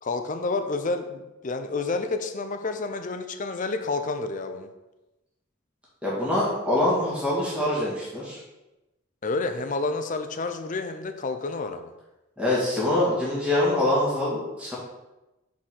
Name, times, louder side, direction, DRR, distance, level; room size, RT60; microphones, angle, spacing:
voice 1, 0.0-4.7 9.2-11.9, left 3 dB, 35° left, 7 dB, 0.5 m, -29 dB
voice 2, 6.0-8.4 12.4-14.7, left 1 dB, 5° right, -7 dB, 1.9 m, -24 dB
4.8 x 4.4 x 5.8 m, 1.0 s
head